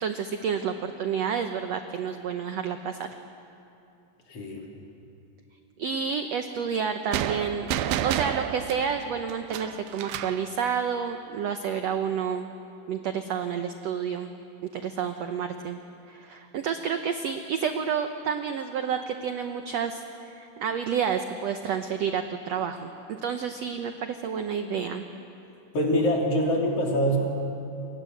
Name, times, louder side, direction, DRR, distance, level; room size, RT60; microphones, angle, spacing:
voice 1, 0.0-3.1 5.8-7.7 8.0-12.5 12.9-14.4 14.7-15.8 16.1-25.0, right 7 dB, 70° right, 7 dB, 1.6 m, -30 dB
voice 2, 4.3-4.7 25.7-27.2, equal, 45° left, -1 dB, 4.2 m, -24 dB
sound 1, 7.1-10.5, right 11 dB, 90° right, 2.6 m, -30 dB
29.0 x 24.0 x 7.8 m, 2.8 s
omnidirectional pair, 4.1 m